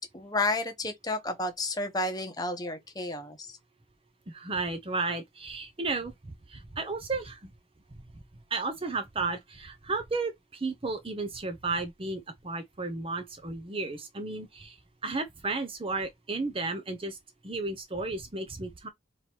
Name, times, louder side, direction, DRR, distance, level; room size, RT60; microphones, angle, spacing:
voice 1, 0.0-3.6, left 2 dB, 20° left, 1.0 m, -31 dB
voice 2, 4.3-7.5 8.5-14.8 15.0-17.2 17.4-18.9, right 3 dB, 30° right, 0.8 m, -33 dB
3.6 x 3.1 x 4.5 m
head